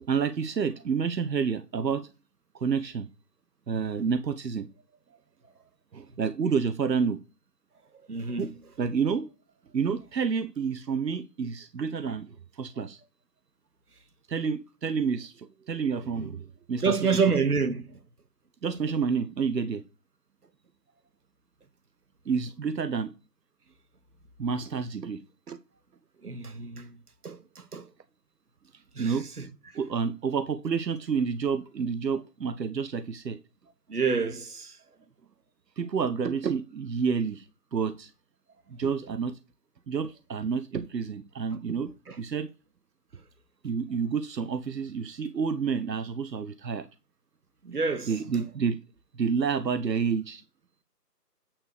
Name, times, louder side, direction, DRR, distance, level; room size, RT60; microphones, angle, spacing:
voice 1, 0.0-2.1 2.5-3.1 3.7-4.7 5.9-7.2 8.4-8.5 8.8-9.3 9.7-13.0 14.3-17.2 18.6-19.8 22.3-23.1 24.4-25.2 25.5-25.6 29.0-29.3 29.7-33.4 35.8-37.5 37.7-38.1 38.7-39.4 39.9-42.5 43.6-46.9 48.1-48.8 49.1-50.4, right 6 dB, 85° right, 0.7 m, -29 dB
voice 2, 8.1-8.5 12.1-12.2 16.8-18.0 26.2-27.0 27.2-27.9 28.9-29.8 33.9-34.8 42.1-42.2 47.6-48.4, right 5 dB, 65° right, 1.1 m, -29 dB
8.8 x 3.2 x 6.6 m
figure-of-eight pair, 165°, 49 cm